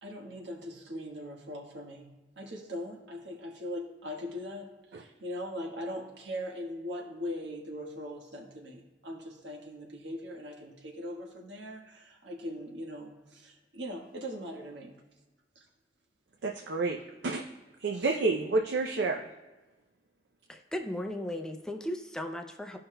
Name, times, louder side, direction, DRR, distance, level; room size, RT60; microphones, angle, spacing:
voice 1, 0.0-14.9 15.5-15.6 17.9-18.2, equal, 85° right, 0 dB, 1.4 m, -40 dB
voice 2, 16.4-17.4 17.8-19.3, right 3 dB, 70° right, 3 dB, 0.5 m, -29 dB
voice 3, 20.5-22.8, left 1 dB, 5° left, 3 dB, 0.4 m, -36 dB
14.0 x 5.5 x 2.2 m, 1.2 s
head